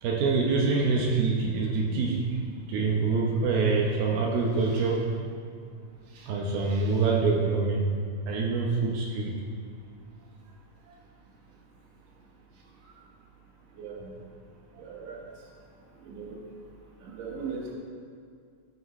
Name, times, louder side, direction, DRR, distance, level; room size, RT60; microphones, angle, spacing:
voice 1, 0.0-2.3 2.7-5.0 6.1-7.9 8.3-9.4, right 4 dB, 90° right, -2 dB, 2.1 m, -25 dB
voice 2, 13.8-14.1 14.8-15.2 16.0-16.4 17.0-17.7, right 5 dB, 65° right, -2 dB, 2.3 m, -38 dB
16.0 x 7.9 x 3.2 m, 2.2 s
omnidirectional pair, 5.8 m